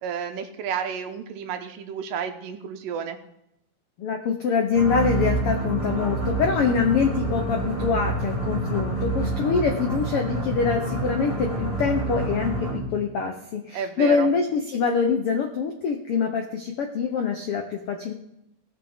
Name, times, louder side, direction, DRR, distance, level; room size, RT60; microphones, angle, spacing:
voice 1, 0.0-3.2 13.7-14.3, right 7 dB, 85° right, 7 dB, 2.6 m, -31 dB
voice 2, 4.0-18.1, left 5 dB, 80° left, 3 dB, 1.2 m, -25 dB
sound 1, 4.7-13.0, right 2 dB, 20° left, 5.1 m, -27 dB
17.5 x 6.6 x 3.6 m, 0.82 s
omnidirectional pair, 4.0 m